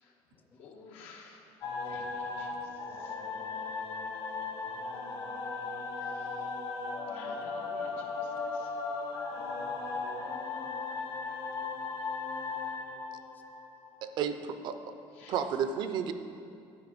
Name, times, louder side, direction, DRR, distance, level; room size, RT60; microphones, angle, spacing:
voice 1, 0.0-0.6 6.1-6.4 7.9-8.1 10.0-10.7 12.0-12.2 13.3-13.4, left 4 dB, 20° left, 5 dB, 0.6 m, -61 dB
voice 2, 0.6-1.4 1.8-3.1 6.0-6.3 7.1-8.7 11.2-11.4 15.2-15.3, left 4 dB, 85° left, 0 dB, 1.4 m, -54 dB
sound 1, 1.6-14.2, left 4 dB, 50° left, 1.3 m, -37 dB
voice 3, 14.0-14.8 15.3-16.1, right 7 dB, 50° right, 10 dB, 0.5 m, -32 dB
9.7 x 7.5 x 5.1 m, 2.5 s
cardioid pair, 165°, 10 cm